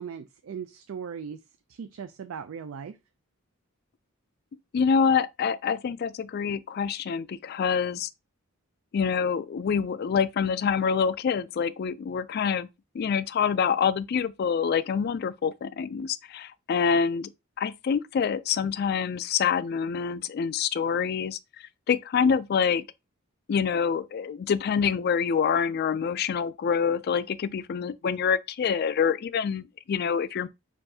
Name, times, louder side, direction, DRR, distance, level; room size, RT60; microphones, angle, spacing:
voice 1, 0.0-1.4 1.7-3.0, right 7 dB, 75° right, 0.4 m, -38 dB
voice 2, 4.7-8.1 8.9-12.7 12.9-17.3 17.6-21.4 21.9-22.8 23.5-30.5, left 6 dB, 50° left, 0.3 m, -26 dB
6.6 x 2.5 x 2.7 m
head